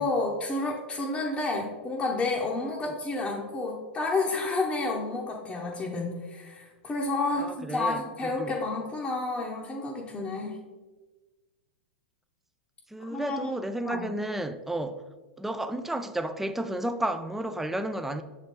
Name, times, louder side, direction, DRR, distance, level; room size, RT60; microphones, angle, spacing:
voice 1, 0.0-10.6 13.0-13.5 13.8-14.1, left 3 dB, 20° left, 0.8 m, -30 dB
voice 2, 7.4-8.6 12.9-15.0 15.4-18.2, right 1 dB, 5° right, 0.3 m, -32 dB
6.5 x 4.1 x 3.6 m
hypercardioid pair, 110°, 6 cm